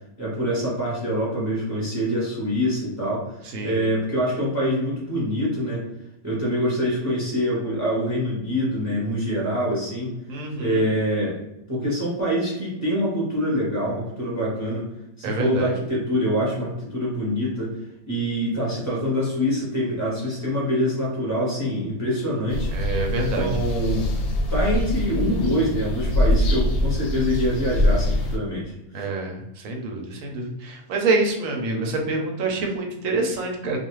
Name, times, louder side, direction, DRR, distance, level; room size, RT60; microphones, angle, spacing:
voice 1, 0.2-3.3 3.6-5.8 6.2-10.1 10.6-11.4 11.7-14.8 15.2-17.7 18.1-22.7 23.3-24.1 24.5-29.0, equal, 15° right, -6 dB, 0.7 m, -25 dB
voice 2, 3.4-3.9 10.3-10.9 15.2-15.7 22.7-23.5 28.9-33.8, right 2 dB, 70° right, 2 dB, 1.0 m, -26 dB
sound 1, 22.5-28.4, left 1 dB, 85° left, 1.1 m, -23 dB
2.4 x 2.3 x 3.0 m, 0.90 s
omnidirectional pair, 1.5 m